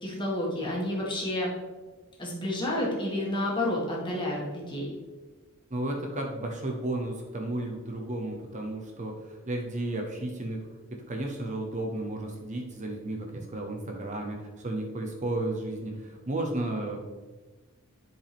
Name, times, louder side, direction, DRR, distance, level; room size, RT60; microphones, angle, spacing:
voice 1, 0.0-1.5 2.2-4.9, left 1 dB, 20° left, -4 dB, 1.9 m, -30 dB
voice 2, 5.7-17.0, right 1 dB, 35° right, 1 dB, 0.8 m, -33 dB
10.5 x 5.0 x 3.5 m, 1.3 s
head